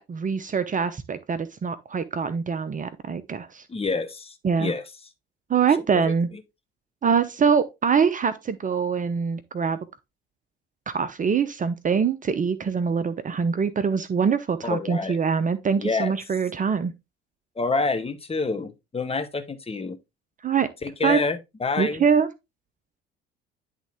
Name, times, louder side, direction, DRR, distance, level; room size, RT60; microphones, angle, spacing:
voice 1, 0.0-3.6 4.4-4.7 5.5-6.3 7.0-9.8 10.9-16.9 20.4-20.7 21.0-21.2 21.8-22.3, right 6 dB, 25° right, 0.8 m, -24 dB
voice 2, 3.7-4.8 5.9-6.1 14.7-15.2 15.8-16.1 17.6-20.0 20.8-22.0, left 3 dB, 20° left, 1.1 m, -28 dB
10.5 x 3.7 x 3.4 m
figure-of-eight pair, 60°, 29 cm